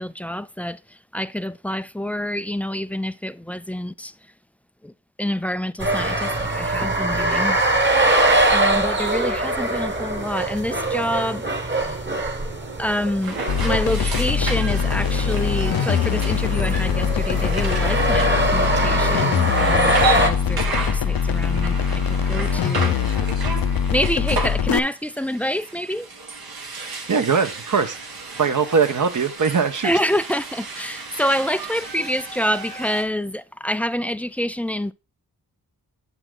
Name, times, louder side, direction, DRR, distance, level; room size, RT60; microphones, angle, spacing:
voice 1, 0.0-4.1 4.8-4.9 5.2-7.6 8.5-11.9 12.8-23.0 23.9-26.1 29.8-34.9, equal, 5° left, 0.3 m, -27 dB
sound 1, 5.8-20.3, right 1 dB, 30° right, 1.5 m, -23 dB
sound 2, 13.2-33.0, right 3 dB, 70° right, 1.7 m, -33 dB
sound 3, 13.5-24.8, left 7 dB, 65° left, 0.7 m, -22 dB
voice 2, 27.1-28.0 28.4-29.9, right 5 dB, 55° right, 1.1 m, -21 dB
8.1 x 5.8 x 3.8 m
cardioid pair, 65°, 37 cm